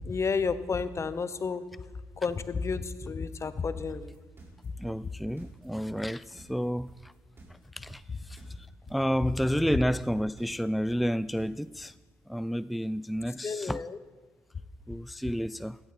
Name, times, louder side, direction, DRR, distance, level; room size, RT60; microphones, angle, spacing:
voice 1, 0.0-1.6 2.2-4.1 13.4-14.0, left 5 dB, 40° left, 0.9 m, -31 dB
sound 1, 3.9-11.8, right 2 dB, 35° right, 4.5 m, -52 dB
voice 2, 4.8-7.1 7.7-12.0 12.3-13.8 14.9-15.8, equal, ahead, 0.3 m, -31 dB
15.5 x 12.0 x 4.3 m
hypercardioid pair, 50°, 7 cm